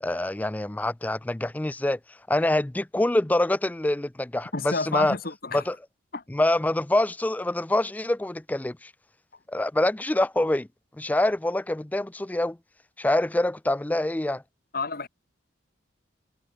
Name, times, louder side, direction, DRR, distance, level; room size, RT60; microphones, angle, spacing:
voice 1, 0.0-5.2 5.5-5.8 6.3-8.9 9.5-10.7 11.0-12.6 13.0-14.4, left 1 dB, 10° left, 0.3 m, -25 dB
voice 2, 4.5-5.6 6.1-6.2 14.7-15.1, left 3 dB, 50° left, 1.6 m, -30 dB
head